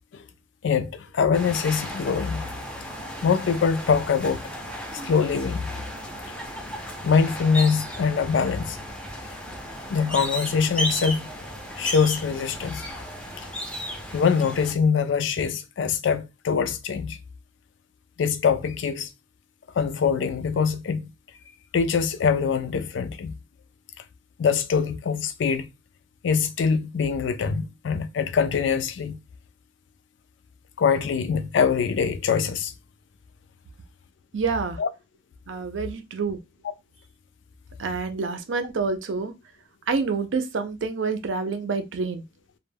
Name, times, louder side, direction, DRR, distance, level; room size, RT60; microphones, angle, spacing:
voice 1, 0.6-2.4 2.7-2.8 3.2-4.5 4.9-5.7 7.0-8.8 9.9-11.3 11.8-12.8 14.1-17.2 18.2-19.1 19.8-21.0 21.7-23.3 24.4-25.7 26.2-29.2 30.8-32.7 34.8-34.9, left 6 dB, 70° left, 0.4 m, -23 dB
sound 1, 1.3-14.7, equal, 5° left, 0.5 m, -35 dB
voice 2, 34.3-34.8 35.5-36.4 37.8-39.3 39.9-42.2, right 4 dB, 75° right, 0.5 m, -27 dB
2.2 x 2.1 x 3.2 m
head